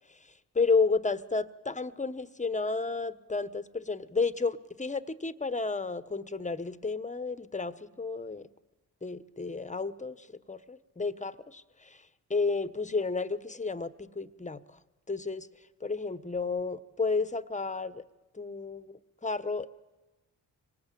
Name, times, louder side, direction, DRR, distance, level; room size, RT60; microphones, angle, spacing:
voice 1, 0.5-8.5 9.0-12.0 12.3-14.8 15.1-15.5 15.8-18.0 18.3-19.7, left 4 dB, 15° left, 14 dB, 1.3 m, -32 dB
25.0 x 19.5 x 8.6 m, 1.1 s
supercardioid pair, 50°, 40 cm